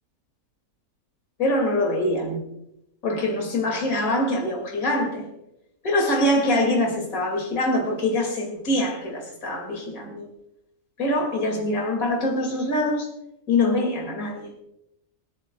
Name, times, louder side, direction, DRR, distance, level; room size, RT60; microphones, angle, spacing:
voice 1, 1.4-2.4 3.0-5.3 5.8-10.2 11.0-13.1 13.5-14.5, left 1 dB, 70° left, 0 dB, 2.9 m, -24 dB
29.0 x 9.8 x 2.3 m, 0.83 s
omnidirectional pair, 1.6 m